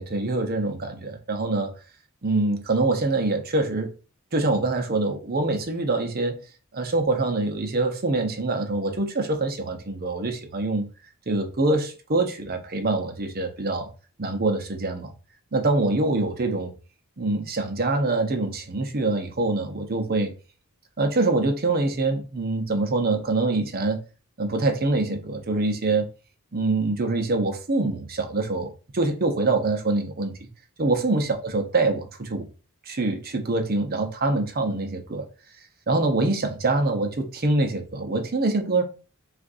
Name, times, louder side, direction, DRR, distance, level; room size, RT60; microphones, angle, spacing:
voice 1, 0.0-1.7 2.2-3.9 4.3-6.4 6.7-10.9 11.3-13.9 14.2-15.1 15.5-16.7 17.2-20.3 21.0-24.0 24.4-26.1 26.5-30.5 30.8-32.4 32.9-35.2 35.9-38.8, right 2 dB, 45° right, 0.8 m, -25 dB
6.3 x 2.5 x 2.6 m
head